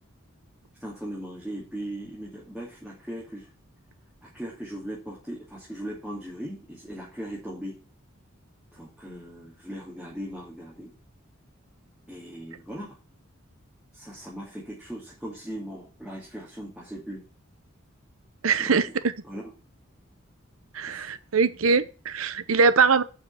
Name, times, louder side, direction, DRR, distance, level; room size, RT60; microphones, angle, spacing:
voice 1, 0.8-3.5 4.2-7.8 8.7-10.9 12.1-13.0 13.9-17.2 18.6-18.8 19.2-19.5 20.9-21.1, equal, ahead, 2.5 m, -38 dB
voice 2, 18.4-19.1 20.7-23.0, right 5 dB, 85° right, 0.8 m, -22 dB
7.5 x 5.7 x 7.0 m
head